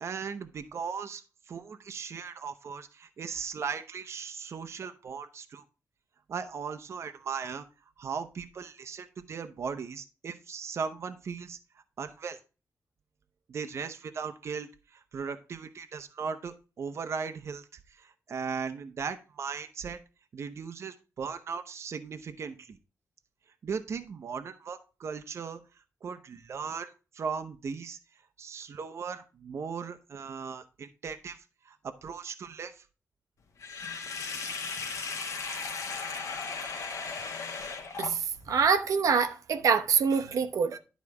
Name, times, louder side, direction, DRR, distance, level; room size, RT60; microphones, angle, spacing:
voice 1, 0.0-1.2 1.5-5.6 6.3-7.6 8.0-11.6 12.0-12.4 13.5-17.6 18.0-20.0 20.3-22.8 23.6-25.6 26.0-28.0 28.4-31.4 31.7-32.8, right 6 dB, 55° right, 0.8 m, -37 dB
Sink (filling or washing), 33.6-38.5, left 4 dB, 70° left, 1.6 m, -36 dB
voice 2, 38.5-40.8, right 6 dB, 85° right, 0.9 m, -25 dB
11.5 x 4.1 x 4.8 m
wide cardioid pair, 160°, 6 cm